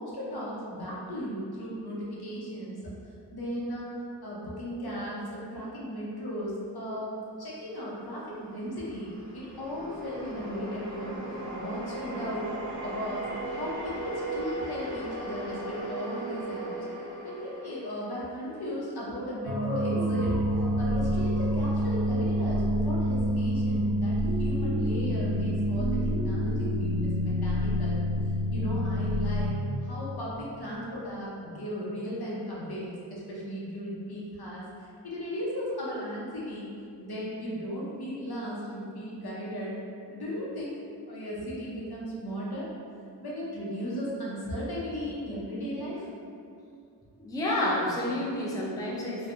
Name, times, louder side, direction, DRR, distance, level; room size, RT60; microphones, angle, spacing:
voice 1, 0.0-2.8 3.3-3.9 4.2-12.5 12.8-16.7 17.2-28.0 28.5-36.7 37.0-39.8 40.1-40.8 41.1-42.7 43.2-46.1, equal, 60° left, -6 dB, 0.7 m, -36 dB
sound 1, 8.2-18.6, right 1 dB, 40° right, 1.2 m, -37 dB
sound 2, 19.5-29.5, equal, 60° right, 0.8 m, -27 dB
voice 2, 47.2-49.3, left 1 dB, 10° left, -6 dB, 0.4 m, -29 dB
2.6 x 2.2 x 2.5 m, 2.4 s
cardioid pair, 50°, 42 cm